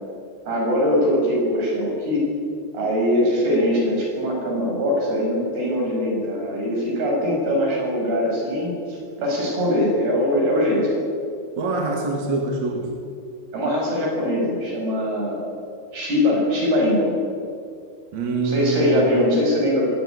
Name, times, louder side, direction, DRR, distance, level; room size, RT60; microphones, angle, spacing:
voice 1, 0.5-2.3 2.7-10.9 13.5-15.4 15.9-17.1 18.4-19.9, left 1 dB, 70° right, -2 dB, 9.6 m, -22 dB
voice 2, 11.6-12.9 18.1-19.1, right 3 dB, 50° right, 1 dB, 3.3 m, -25 dB
23.5 x 17.0 x 10.0 m, 2.4 s
omnidirectional pair, 4.6 m